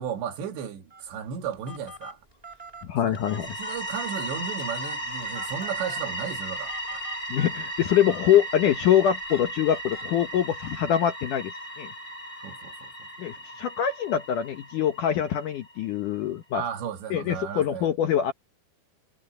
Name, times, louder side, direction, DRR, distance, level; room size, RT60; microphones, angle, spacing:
voice 1, 0.0-2.2 3.0-3.2 3.4-7.0 12.4-12.9 16.5-17.9, right 8 dB, 85° right, 4.6 m, -34 dB
Telephone, 0.9-10.7, equal, 10° right, 3.7 m, -48 dB
voice 2, 2.9-3.5 7.3-11.5 11.8-11.9 13.2-16.6 17.1-18.3, left 10 dB, 65° left, 2.1 m, -24 dB
sound 1, 3.1-15.8, right 1 dB, 25° left, 3.2 m, -36 dB
omnidirectional pair, 4.9 m